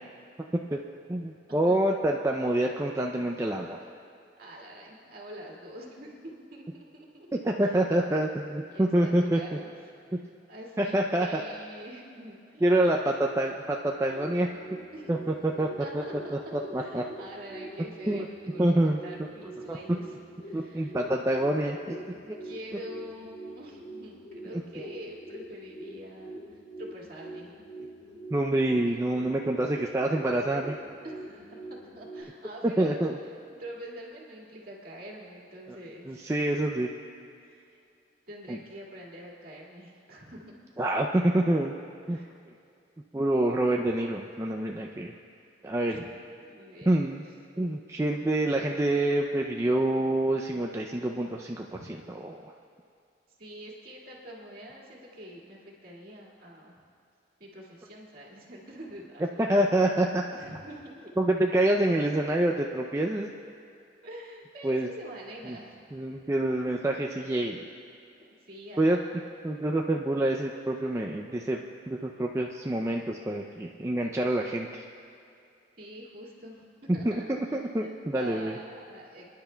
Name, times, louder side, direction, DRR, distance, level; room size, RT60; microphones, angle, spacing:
voice 1, 1.1-3.8 7.4-9.4 10.8-11.4 12.6-14.5 15.1-15.2 15.4-16.0 16.3-17.0 18.1-18.3 18.6-19.0 19.7-19.8 20.5-22.0 22.3-22.4 28.3-30.7 32.8-33.2 36.1-36.9 38.5-38.6 40.8-41.7 42.1-42.2 43.1-45.1 45.6-46.0 46.9-47.2 47.6-52.5 59.4-60.2 61.2-63.3 64.6-64.9 65.5-65.6 65.9-67.7 68.8-69.0 69.4-74.8 77.0-78.6, right 1 dB, 15° right, 0 dB, 0.4 m, -27 dB
voice 2, 4.4-6.2 6.5-7.7 8.7-9.7 10.1-10.2 10.5-12.8 14.9-15.1 15.8-20.2 20.4-20.9 22.4-27.5 31.0-33.0 33.6-36.3 37.4-37.8 38.3-40.4 40.8-41.0 42.1-42.3 45.9-46.1 46.4-47.0 51.7-51.9 53.4-56.8 57.4-59.4 60.3-61.1 64.0-65.9 68.2-69.1 75.8-79.3, equal, 50° right, -3 dB, 1.9 m, -45 dB
sound 1, 13.8-32.2, right 1 dB, 75° left, 3.1 m, -45 dB
28.0 x 10.5 x 2.2 m, 2.5 s
head